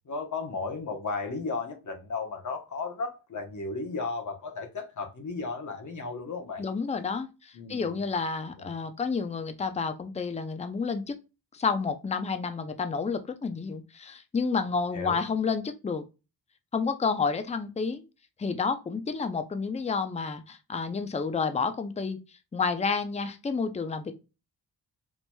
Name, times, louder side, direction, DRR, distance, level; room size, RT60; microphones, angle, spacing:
voice 1, 0.1-6.7 7.5-7.9 8.6-8.7 14.9-15.2, left 4 dB, 50° left, 0.9 m, -34 dB
voice 2, 6.6-11.2 11.5-16.0 16.7-18.0 18.4-22.2 22.5-24.1, left 5 dB, 15° left, 0.5 m, -30 dB
4.4 x 2.9 x 2.2 m
cardioid pair, 75°, 39 cm